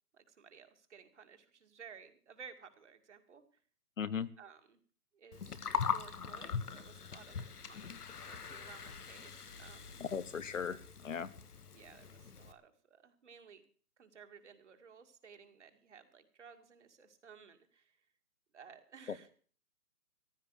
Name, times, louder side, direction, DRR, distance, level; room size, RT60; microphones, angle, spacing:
voice 1, 0.1-3.6 4.4-4.8 5.1-5.6 5.9-10.0 11.7-13.6 14.0-18.1 18.5-19.3, right 6 dB, 45° right, 7 dB, 2.1 m, -56 dB
voice 2, 4.0-4.3 10.0-11.3 19.1-19.2, left 6 dB, 55° left, 17 dB, 0.9 m, -38 dB
Gurgling, 5.3-12.5, left 6 dB, 75° left, 1.6 m, -41 dB
15.0 x 10.5 x 6.2 m, 0.43 s
hypercardioid pair, 170°, 46 cm